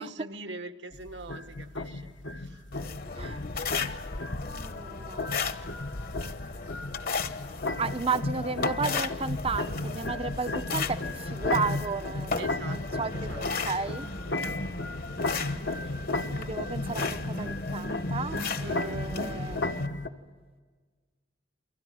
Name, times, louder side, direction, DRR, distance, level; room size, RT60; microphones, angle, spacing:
voice 1, 0.0-2.6 12.4-13.7 14.3-14.7 18.6-19.0, right 2 dB, 65° right, 1.5 m, -44 dB
sound 1, 0.9-20.1, left 2 dB, 80° left, 1.5 m, -34 dB
sound 2, 2.7-19.9, left 4 dB, 50° left, 1.1 m, -36 dB
voice 2, 4.4-5.3 7.8-13.1 13.4-14.1 16.2-19.6, right 4 dB, 30° right, 0.7 m, -33 dB
29.5 x 24.0 x 7.8 m
head